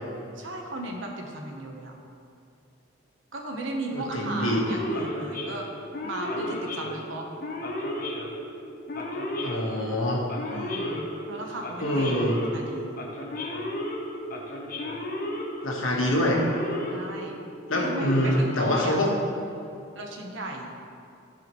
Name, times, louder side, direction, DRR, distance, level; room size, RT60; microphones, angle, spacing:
voice 1, 0.3-1.9 3.3-5.7 6.0-7.3 10.5-13.0 16.9-17.4 17.7-19.0 19.9-20.7, right 1 dB, 70° right, 1 dB, 1.0 m, -35 dB
voice 2, 3.9-4.6 9.4-10.2 11.8-12.4 15.6-16.4 17.7-19.1, left 1 dB, 85° left, -2 dB, 1.4 m, -25 dB
Male speech man speaking / Siren, 4.5-19.2, left 1 dB, 45° left, 0.9 m, -34 dB
14.0 x 4.8 x 3.1 m, 2.6 s
head